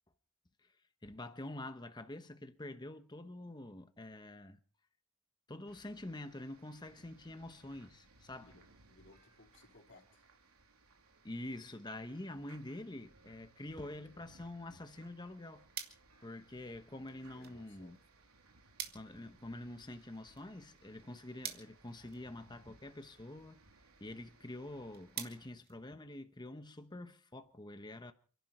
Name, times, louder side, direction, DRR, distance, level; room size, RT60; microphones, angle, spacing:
voice 1, 1.0-4.6 5.5-8.6 11.2-15.7 16.2-18.0 18.9-23.6 24.0-28.1, left 1 dB, 20° left, 1.0 m, -46 dB
sound 1, 5.7-25.5, right 3 dB, 75° right, 3.2 m, -65 dB
voice 2, 8.3-10.3 17.1-17.9, left 2 dB, 55° left, 3.7 m, -62 dB
sound 2, 15.7-26.5, right 9 dB, 45° right, 2.3 m, -51 dB
28.5 x 11.5 x 4.3 m
head